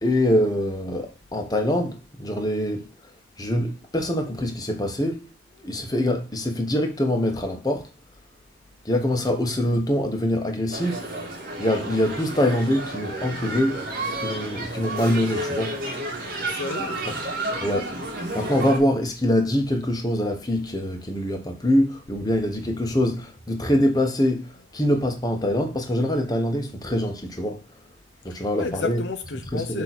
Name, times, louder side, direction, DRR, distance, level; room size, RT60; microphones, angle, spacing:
voice 1, 0.0-2.9 3.4-5.3 5.5-7.9 8.8-11.3 11.6-13.8 14.1-15.8 17.0-17.2 17.6-17.9 18.3-27.7 28.2-29.0 29.5-29.8, left 1 dB, 20° left, 1.3 m, -24 dB
sound 1, 10.7-18.8, right 1 dB, 50° right, 2.0 m, -31 dB
voice 2, 13.9-14.4 16.5-17.0 24.5-24.7 28.3-29.8, left 4 dB, 65° left, 0.6 m, -33 dB
6.8 x 3.2 x 6.0 m
head